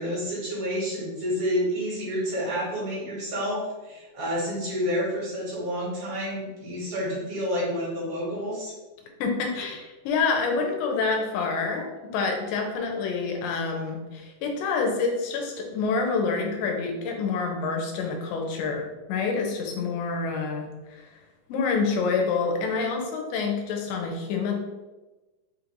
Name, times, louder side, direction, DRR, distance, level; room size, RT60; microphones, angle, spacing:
voice 1, 0.0-8.7, equal, 60° right, -6 dB, 2.7 m, -29 dB
voice 2, 9.2-21.1 21.5-24.5, left 4 dB, 90° left, 2 dB, 2.4 m, -27 dB
5.6 x 2.5 x 3.1 m, 1.1 s
omnidirectional pair, 4.0 m